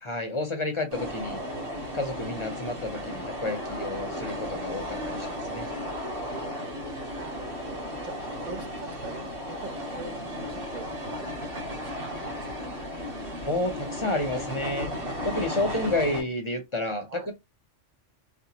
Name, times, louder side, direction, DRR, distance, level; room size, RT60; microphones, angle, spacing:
voice 1, 0.0-1.4 1.9-5.7 13.4-14.9 15.2-17.3, left 2 dB, 30° left, 0.6 m, -30 dB
sound 1, 0.9-16.2, equal, 80° right, 2.0 m, -35 dB
voice 2, 7.1-8.2 8.5-12.9 15.6-15.8 17.1-17.3, right 4 dB, 45° right, 0.7 m, -43 dB
4.3 x 2.2 x 2.8 m
omnidirectional pair, 1.3 m